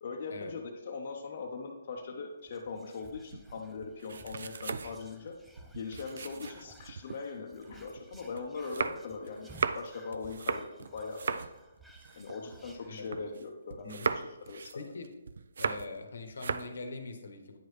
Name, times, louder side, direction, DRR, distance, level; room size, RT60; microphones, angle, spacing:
voice 1, 0.0-5.4 5.7-11.4 12.2-14.8, left 4 dB, 45° left, 0 dB, 0.7 m, -41 dB
Whispering, 2.4-13.5 13.8-13.9 14.1-14.5, right 1 dB, 5° right, 0.4 m, -58 dB
sound 1, 3.1-7.2 7.6-13.4 13.7-16.0 16.3-16.8, right 5 dB, 65° right, 0.3 m, -37 dB
voice 2, 12.9-13.3 13.8-14.2 14.7-15.1 15.6-17.6, left 3 dB, 75° left, 6 dB, 1.0 m, -42 dB
9.0 x 4.6 x 3.2 m, 1.0 s
hypercardioid pair, 160°, 0 cm